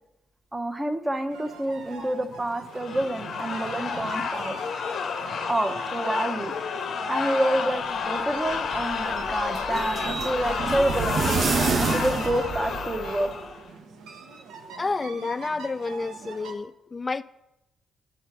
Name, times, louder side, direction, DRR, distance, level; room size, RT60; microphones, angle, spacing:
voice 1, 0.5-4.6 5.5-6.5 7.1-13.3, right 1 dB, 15° right, 0.8 m, -28 dB
sound 1, 1.3-16.5, right 4 dB, 85° right, 1.0 m, -43 dB
sound 2, 2.7-13.7, left 5 dB, 55° left, 0.7 m, -31 dB
sound 3, 8.3-13.3, right 5 dB, 45° right, 0.5 m, -29 dB
voice 2, 14.8-17.2, left 3 dB, 25° left, 0.3 m, -30 dB
9.7 x 4.8 x 6.0 m
cardioid pair, 110°, 0 cm